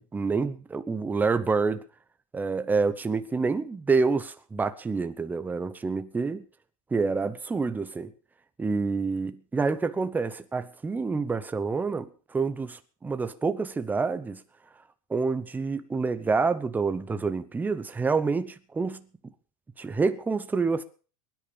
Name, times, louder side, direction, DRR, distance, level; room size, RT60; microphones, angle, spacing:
voice 1, 0.0-1.8 2.3-6.4 6.9-8.1 8.6-14.4 15.1-19.1 19.8-20.8, right 4 dB, 10° right, 0.9 m, -27 dB
22.0 x 10.0 x 5.2 m
supercardioid pair, 150°, 20 cm